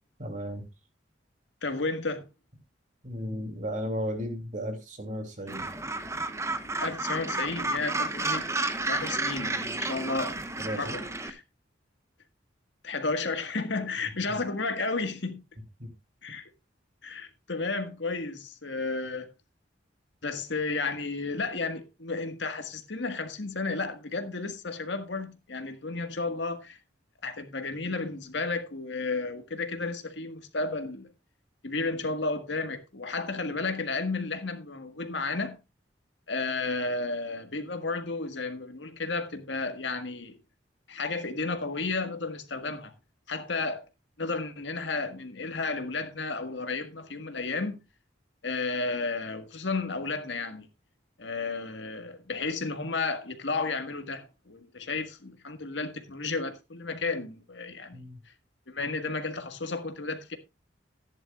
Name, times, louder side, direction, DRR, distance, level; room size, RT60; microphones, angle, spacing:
voice 1, 0.2-0.6 3.0-5.6 10.6-10.9 15.8-15.9 57.9-58.2, equal, 45° right, 3.0 m, -34 dB
voice 2, 1.6-2.3 6.8-8.5 8.9-10.4 10.8-11.4 12.8-15.4 16.2-16.5 17.0-19.3 20.2-26.8 27.2-31.1 31.6-35.6 36.3-40.4 40.9-42.9 43.3-43.9 44.2-47.8 48.4-50.7 51.2-58.0 58.7-60.4, left 3 dB, 80° left, 1.7 m, -32 dB
Gull seagull, 5.5-11.3, right 2 dB, 15° right, 0.9 m, -31 dB
14.5 x 10.5 x 2.4 m
head